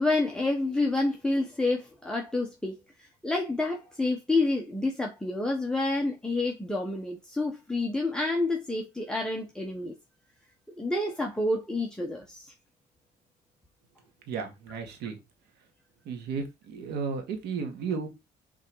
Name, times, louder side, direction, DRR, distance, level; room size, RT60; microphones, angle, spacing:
voice 1, 0.0-9.9 10.8-12.5, left 2 dB, 5° left, 1.3 m, -29 dB
voice 2, 14.3-15.2 16.0-18.1, right 5 dB, 80° right, 2.1 m, -34 dB
6.7 x 3.7 x 4.8 m
cardioid pair, 110°, 17 cm